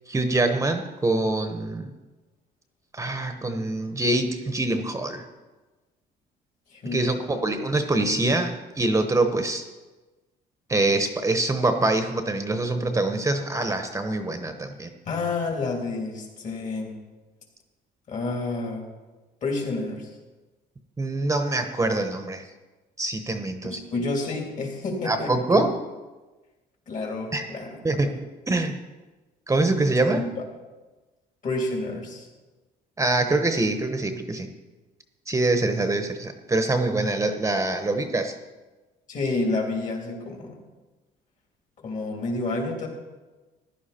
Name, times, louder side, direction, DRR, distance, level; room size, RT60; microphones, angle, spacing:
voice 1, 0.1-1.9 2.9-5.2 6.9-9.7 10.7-14.9 21.0-22.5 23.0-23.8 25.0-25.7 27.3-27.5 27.8-28.2 28.5-28.8 29.5-30.2 33.0-34.5 35.3-38.4, right 2 dB, 15° right, 7 dB, 0.9 m, -24 dB
voice 2, 6.7-7.4 15.0-17.0 18.1-18.9 19.4-20.1 23.6-25.3 26.9-28.1 30.1-30.4 31.4-32.3 39.1-40.6 41.8-42.9, left 3 dB, 50° left, 1 dB, 3.3 m, -29 dB
15.0 x 11.0 x 4.3 m, 1.2 s
cardioid pair, 110°, 17 cm